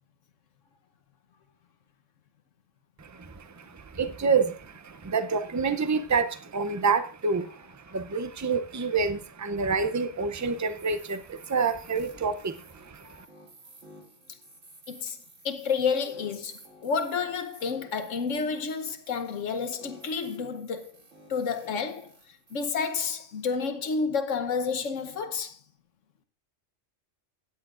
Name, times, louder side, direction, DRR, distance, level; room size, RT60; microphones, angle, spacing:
voice 1, 3.0-13.1, right 5 dB, 25° right, 0.4 m, -28 dB
sound 1, 10.4-23.4, right 2 dB, 90° right, 2.8 m, -54 dB
voice 2, 14.9-15.2 15.4-20.9 21.3-22.1 22.5-25.6, left 5 dB, 80° left, 1.3 m, -30 dB
16.5 x 10.0 x 2.5 m
omnidirectional pair, 1.3 m